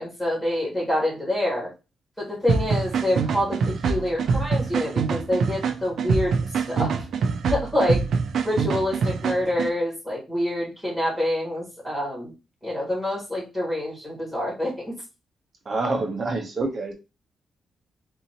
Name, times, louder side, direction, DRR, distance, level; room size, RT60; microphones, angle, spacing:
voice 1, 0.0-1.7 2.2-3.6 3.9-6.9 7.5-8.0 8.4-12.3 12.6-14.9, left 1 dB, 10° left, -5 dB, 1.8 m, -26 dB
sound 1, 2.5-9.7, right 5 dB, 60° right, 0.4 m, -25 dB
voice 2, 15.7-16.9, right 3 dB, 35° right, 3 dB, 0.8 m, -26 dB
3.7 x 2.8 x 2.8 m, 0.28 s
wide cardioid pair, 175°, 0 cm